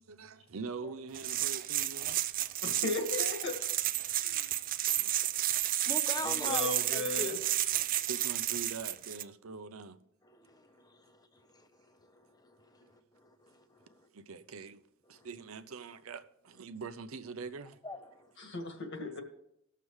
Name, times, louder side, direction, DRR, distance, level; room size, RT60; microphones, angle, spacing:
voice 1, 0.0-2.2 5.5-5.6 8.1-10.0 14.1-14.8 15.1-17.8, right 4 dB, 80° right, 0.7 m, -43 dB
sound 1, 1.1-9.2, right 13 dB, 40° right, 0.4 m, -32 dB
voice 2, 2.6-3.6 4.0-4.5 6.2-7.4 18.4-19.2, left 3 dB, 60° left, 1.7 m, -36 dB
voice 3, 5.8-8.0 10.2-14.1 15.1-15.3 17.8-18.3, left 2 dB, 20° left, 0.9 m, -44 dB
19.5 x 6.7 x 3.2 m
head